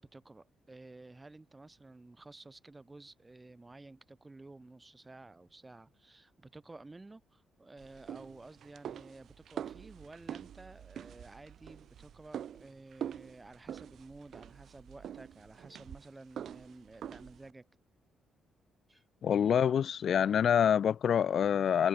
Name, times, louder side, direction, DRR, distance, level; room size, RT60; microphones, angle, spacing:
voice 1, 0.0-17.7 18.9-19.0, right 2 dB, 20° right, 4.4 m, -52 dB
sound 1, 7.8-17.5, right 9 dB, 65° right, 3.5 m, -45 dB
voice 2, 19.2-21.9, left 8 dB, 60° left, 0.8 m, -26 dB
cardioid pair, 90°, 0 cm